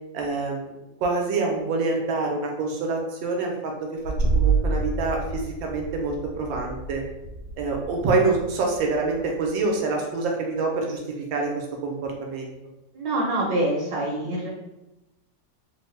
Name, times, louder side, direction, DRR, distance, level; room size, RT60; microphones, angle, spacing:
voice 1, 0.1-0.7 1.0-3.7 4.3-7.0 7.6-11.0 11.3-12.5, right 3 dB, 90° right, 1 dB, 1.4 m, -26 dB
sound 1, 4.0-9.6, right 4 dB, 65° left, 0.9 m, -28 dB
voice 2, 12.9-14.5, right 1 dB, 70° right, -4 dB, 1.3 m, -25 dB
3.7 x 2.1 x 3.1 m, 0.97 s
omnidirectional pair, 2.0 m